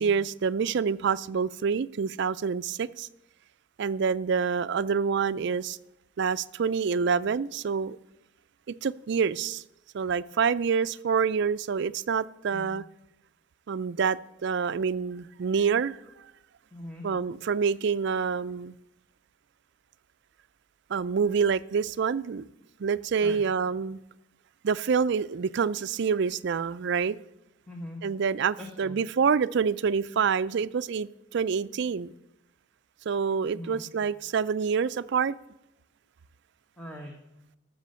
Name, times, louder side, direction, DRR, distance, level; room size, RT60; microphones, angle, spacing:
voice 1, 0.0-3.1 3.8-5.8 6.2-8.0 8.7-9.6 9.9-12.8 13.7-16.0 17.0-18.7 20.9-22.4 22.8-24.0 24.6-27.2 28.0-32.1 33.1-35.4, right 6 dB, 55° right, 16 dB, 0.4 m, -27 dB
voice 2, 16.7-17.1 23.2-23.4 27.7-28.0 28.6-29.0 33.5-33.8 36.8-37.1, left 1 dB, 5° left, 1 dB, 1.3 m, -41 dB
13.5 x 6.3 x 6.8 m, 0.90 s
head